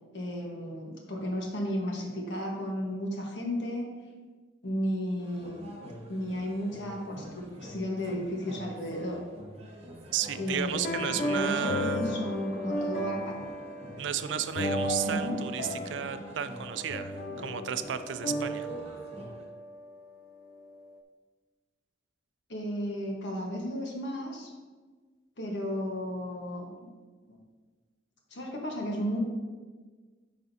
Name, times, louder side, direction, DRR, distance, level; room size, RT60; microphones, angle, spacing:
voice 1, 0.1-3.9 4.6-5.7 6.1-9.2 10.4-13.4 15.1-15.4 22.5-24.5 25.4-26.7 27.3-27.4 28.3-29.2, equal, 75° left, 0 dB, 1.3 m, -34 dB
sound 1, 5.2-19.4, equal, 35° right, 1.1 m, -46 dB
voice 2, 10.1-12.1 14.0-18.7, right 9 dB, 85° right, 12 dB, 0.4 m, -33 dB
sound 2, 10.5-19.9, equal, 50° left, 0.4 m, -35 dB
8.8 x 4.9 x 2.7 m, 1.4 s
head